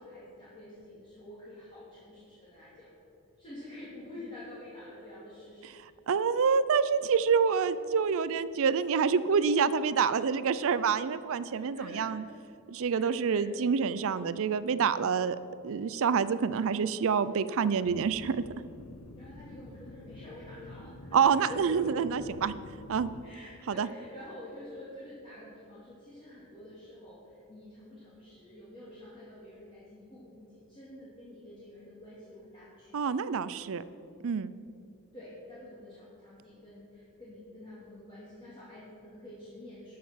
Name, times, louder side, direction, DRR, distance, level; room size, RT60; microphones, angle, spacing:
voice 1, 0.0-2.9 3.4-5.9 6.3-6.4 11.5-12.1 12.9-13.5 19.2-22.0 23.2-33.1 35.1-40.0, left 1 dB, 25° left, -9 dB, 2.4 m, -48 dB
voice 2, 6.1-12.2 12.7-15.4 15.6-18.4 21.1-22.5 22.9-23.1 23.8-23.9 32.9-33.8 34.2-34.5, right 6 dB, 65° right, 15 dB, 0.4 m, -27 dB
sound 1, 17.8-23.2, left 1 dB, 75° left, 0.7 m, -48 dB
12.5 x 6.6 x 5.7 m, 2.6 s
head